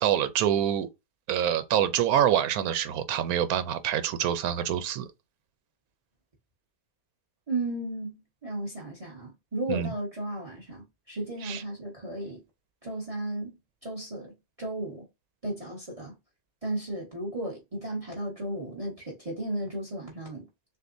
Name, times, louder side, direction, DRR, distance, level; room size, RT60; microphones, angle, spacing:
voice 1, 0.0-0.9 1.3-5.1 9.7-9.9 11.4-11.6, right 10 dB, 85° right, 1.1 m, -26 dB
voice 2, 7.5-12.4 12.8-14.3 14.6-15.0 15.4-16.1 16.6-20.5, right 1 dB, 25° right, 1.4 m, -34 dB
6.5 x 2.4 x 2.6 m
omnidirectional pair, 1.5 m